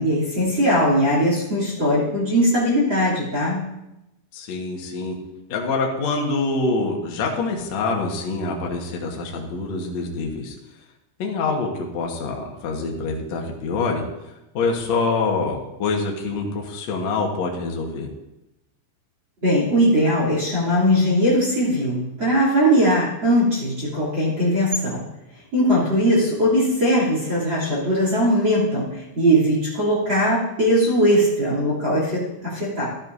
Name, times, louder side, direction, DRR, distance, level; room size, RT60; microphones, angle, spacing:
voice 1, 0.0-3.7 19.4-25.0 25.5-32.9, equal, 30° right, -4 dB, 3.1 m, -20 dB
voice 2, 4.3-5.2 5.5-10.5 11.2-14.0 14.5-18.1, left 3 dB, 75° left, 0 dB, 1.6 m, -25 dB
14.5 x 13.0 x 2.7 m, 0.92 s
omnidirectional pair, 5.6 m